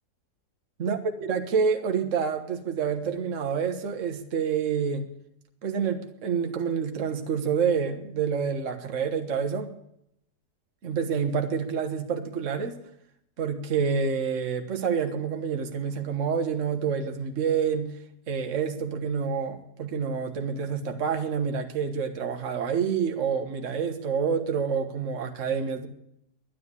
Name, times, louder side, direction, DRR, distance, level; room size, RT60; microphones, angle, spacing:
voice 1, 0.8-5.1 5.6-9.7 10.8-12.8 13.4-17.9 18.3-25.9, right 6 dB, 55° right, 5 dB, 1.5 m, -28 dB
11.5 x 10.0 x 9.8 m, 0.76 s
omnidirectional pair, 1.7 m